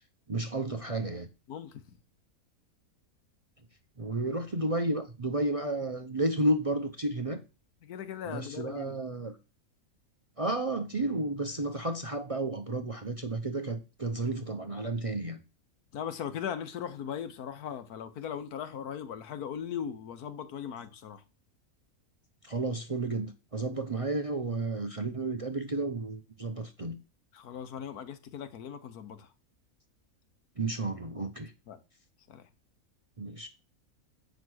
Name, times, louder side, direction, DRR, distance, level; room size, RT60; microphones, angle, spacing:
voice 1, 0.3-1.3 4.0-7.4 8.3-9.4 10.4-15.4 22.4-27.0 30.6-31.5 33.2-33.5, right 2 dB, 35° right, 0.5 m, -32 dB
voice 2, 1.5-1.8 7.8-9.0 15.9-21.2 27.3-29.3 31.7-31.8 32.3-32.5, left 8 dB, 90° left, 1.4 m, -39 dB
8.0 x 5.2 x 6.2 m
omnidirectional pair, 1.5 m